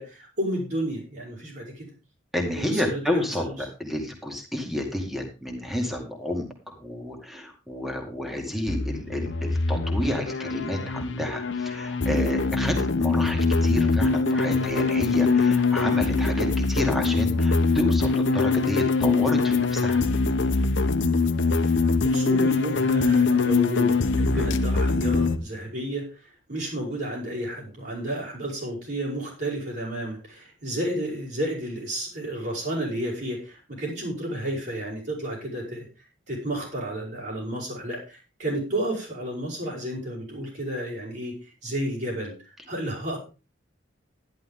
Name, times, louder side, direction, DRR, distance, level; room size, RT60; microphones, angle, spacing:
voice 1, 0.0-1.9 2.6-3.5 22.0-42.3 42.7-43.2, right 1 dB, 60° right, -7 dB, 5.3 m, -31 dB
voice 2, 2.3-20.0 24.3-24.5, left 1 dB, ahead, 2 dB, 2.1 m, -30 dB
sound 1, 8.7-25.4, left 3 dB, 70° left, 0.9 m, -23 dB
12.0 x 11.0 x 3.8 m, 0.32 s
head